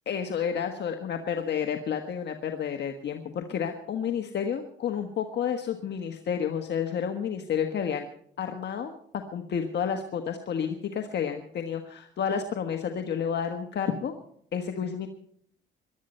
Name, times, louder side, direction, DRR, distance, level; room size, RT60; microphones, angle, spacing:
voice 1, 0.1-8.1 8.4-8.9 9.3-14.1 14.5-15.1, left 7 dB, 60° left, 5 dB, 1.4 m, -30 dB
21.0 x 12.0 x 4.4 m, 0.65 s
cardioid pair, 90°, 20 cm